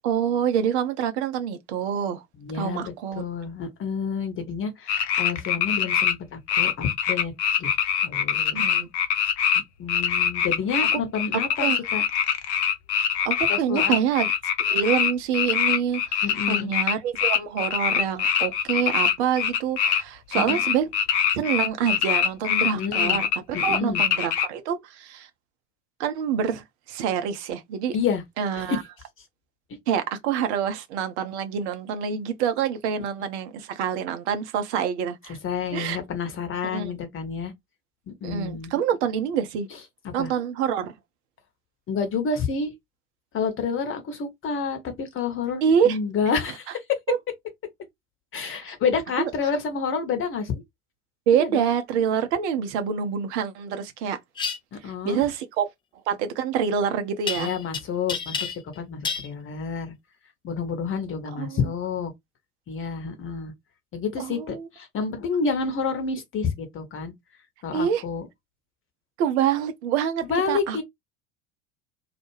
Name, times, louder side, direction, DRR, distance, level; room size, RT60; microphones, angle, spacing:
voice 1, 0.0-2.2 2.5-3.2 8.5-8.9 10.9-11.0 11.6-11.8 13.2-14.3 14.7-20.9 21.3-25.3 26.0-28.0 28.4-28.8 29.9-35.4 35.7-36.0 36.7-36.9 38.2-39.7 40.1-40.9 45.6-46.0 47.1-47.2 49.2-49.3 51.3-54.2 54.8-55.7 56.1-57.5 61.4-61.6 64.2-64.7 67.7-68.0 69.2-70.8, right 8 dB, 55° right, 0.7 m, -26 dB
voice 2, 2.4-7.3 7.6-7.7 8.0-8.6 9.8-12.0 13.5-14.0 16.2-16.7 20.4-20.6 22.7-23.2 23.5-24.0 27.9-28.2 28.6-28.8 35.4-37.5 38.1-38.7 40.2-40.3 41.9-42.7 43.3-46.8 48.3-50.6 51.4-51.7 54.7-55.2 57.4-58.4 58.8-59.9 60.4-62.1 62.7-63.5 63.9-67.1 67.6-68.3 70.2-70.8, left 5 dB, 30° left, 1.0 m, -29 dB
sound 1, 4.9-6.1 6.5-9.6 9.9-20.0 20.3-24.5, left 8 dB, 55° left, 0.6 m, -23 dB
sound 2, 54.3-54.6 57.3-57.8 58.1-58.8 59.0-59.3, left 6 dB, 15° left, 0.3 m, -29 dB
2.4 x 2.1 x 3.1 m
figure-of-eight pair, 70°, 41 cm